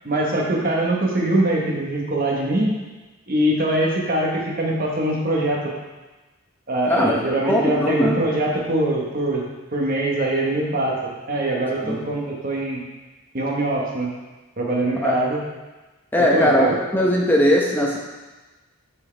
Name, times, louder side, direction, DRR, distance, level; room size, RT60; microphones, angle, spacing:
voice 1, 0.0-2.7 3.3-5.6 6.7-9.4 9.7-10.9 11.3-12.8 13.3-14.1 14.6-15.4 16.2-16.7, right 1 dB, 40° right, -2 dB, 1.2 m, -22 dB
voice 2, 6.9-8.2 11.8-12.0 15.0-15.1 16.1-18.0, equal, 10° left, -2 dB, 0.9 m, -19 dB
8.5 x 4.6 x 3.3 m, 1.2 s
head